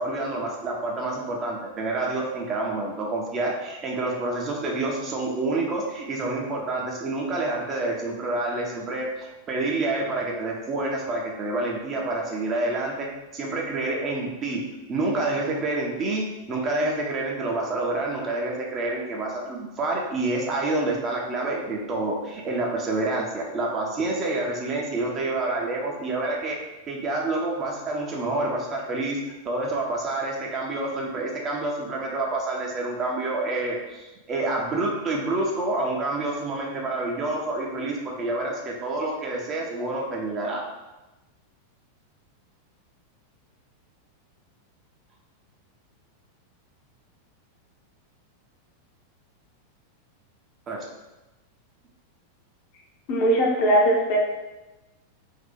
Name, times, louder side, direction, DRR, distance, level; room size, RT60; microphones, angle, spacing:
voice 1, 0.0-14.6 14.9-26.6 26.9-40.6 50.7-50.9, right 2 dB, 30° right, -1 dB, 0.6 m, -28 dB
voice 2, 53.1-54.2, right 1 dB, 45° left, -1 dB, 0.7 m, -20 dB
2.7 x 2.4 x 3.8 m, 1.1 s
figure-of-eight pair, 90°, 0 cm